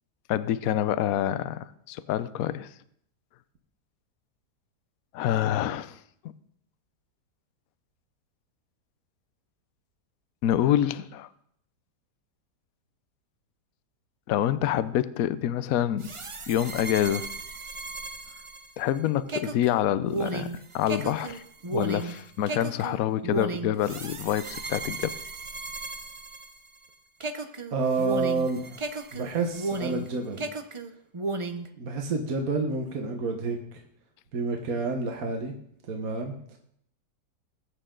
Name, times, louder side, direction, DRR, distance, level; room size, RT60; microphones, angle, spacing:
voice 1, 0.3-2.7 5.1-6.0 10.4-11.3 14.3-16.1 16.5-17.3 18.8-21.4 21.7-25.1, left 11 dB, 65° left, 14 dB, 1.0 m, -27 dB
sound 1, 16.0-26.9 27.2-30.1 30.4-31.7, right 3 dB, 35° right, 0.4 m, -35 dB
voice 2, 27.7-28.8 29.1-30.4 31.8-33.8 34.3-35.5 35.9-36.3, right 3 dB, 60° right, 2 dB, 1.7 m, -29 dB
21.0 x 8.7 x 3.9 m, 0.69 s
omnidirectional pair, 1.8 m